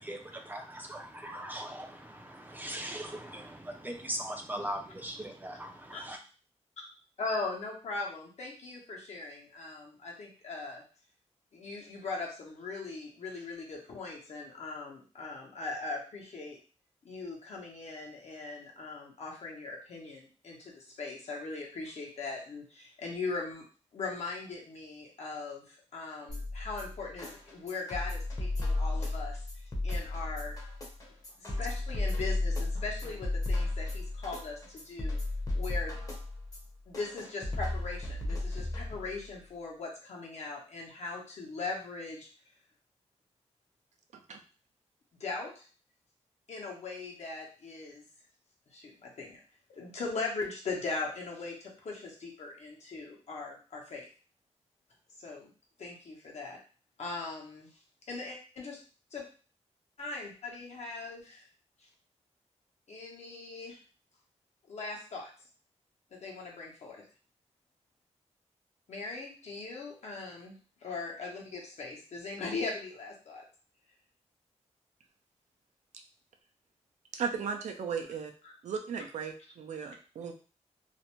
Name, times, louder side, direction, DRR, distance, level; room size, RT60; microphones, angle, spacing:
voice 1, 0.0-6.2, right 1 dB, 15° right, 3 dB, 0.4 m, -40 dB
voice 2, 7.2-10.8 11.5-16.6 17.0-23.6 23.9-30.6 31.4-35.2 35.5-36.1 36.9-42.3 45.2-45.7 46.5-48.0 48.7-49.4 49.7-54.1 55.2-55.5 55.8-56.6 57.0-57.7 58.1-58.8 59.1-59.2 60.0-61.5 62.9-63.8 64.7-65.3 66.1-67.0 68.9-70.6 70.8-73.4 78.4-78.5 79.8-79.9, left 3 dB, 70° left, -1 dB, 0.8 m, -40 dB
sound 1, 26.3-39.3, left 2 dB, 30° left, 0.7 m, -34 dB
voice 3, 77.1-78.3 78.6-80.3, right 6 dB, 80° right, 4 dB, 0.4 m, -36 dB
2.5 x 2.1 x 2.9 m, 0.38 s
wide cardioid pair, 130°, 12 cm